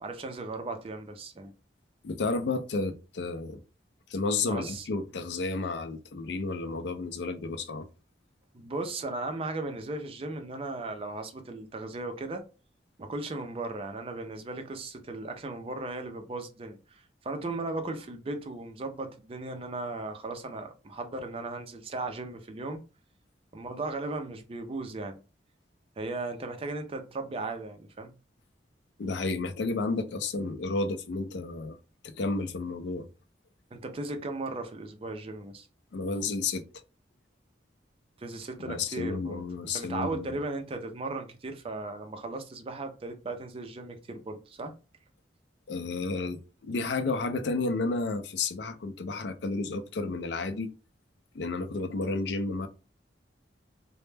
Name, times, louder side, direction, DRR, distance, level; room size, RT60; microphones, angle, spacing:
voice 1, 0.0-1.5 4.5-4.9 8.5-12.4 13.0-22.8 23.5-25.2 26.0-28.1 33.7-35.7 38.2-44.7, right 2 dB, 30° right, 0.4 m, -36 dB
voice 2, 2.0-3.6 4.1-7.9 29.0-31.8 32.0-33.1 35.9-36.6 38.6-40.4 45.7-50.7 51.3-52.7, left 3 dB, 70° left, 0.4 m, -31 dB
2.1 x 2.0 x 3.2 m
head